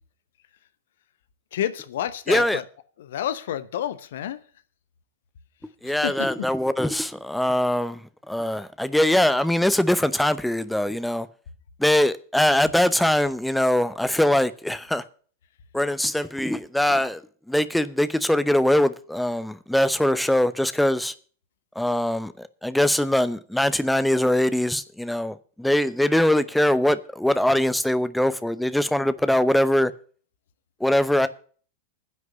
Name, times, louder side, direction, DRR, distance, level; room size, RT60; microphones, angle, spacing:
voice 1, 1.5-2.6 3.1-4.4 5.8-6.1, left 11 dB, 60° left, 0.9 m, -29 dB
voice 2, 2.3-2.6 5.8-11.3 11.8-15.0 15.7-17.2 17.5-21.1 21.7-29.9 30.8-31.3, left 1 dB, 5° left, 0.8 m, -22 dB
10.5 x 6.4 x 8.3 m
figure-of-eight pair, 90°, 0 cm